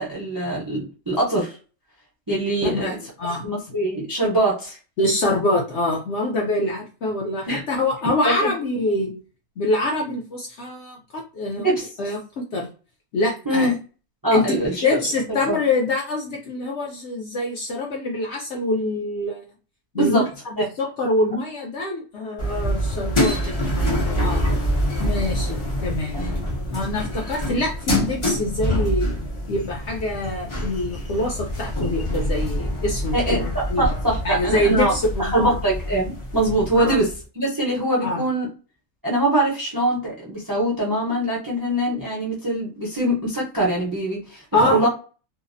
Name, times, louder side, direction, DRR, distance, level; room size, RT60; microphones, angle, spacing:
voice 1, 0.0-1.5 2.3-3.0 3.4-4.8 7.5-7.6 8.2-8.5 11.6-11.9 13.5-13.7 14.2-14.8 15.5-15.6 19.9-20.3 20.6-20.7 33.1-38.5 39.0-44.9, right 1 dB, 25° right, -3 dB, 0.5 m, -23 dB
voice 2, 2.6-3.4 5.0-9.1 9.6-11.7 12.0-12.7 13.1-13.8 14.3-19.5 19.9-24.4 25.0-26.2 26.7-29.1 29.5-33.9 34.2-35.6 36.8-37.0 38.0-38.3 44.5-44.9, left 2 dB, 60° left, -1 dB, 0.8 m, -25 dB
sound 1, 22.4-37.2, equal, 40° left, 0.4 m, -26 dB
2.6 x 2.0 x 2.5 m, 0.35 s
omnidirectional pair, 1.6 m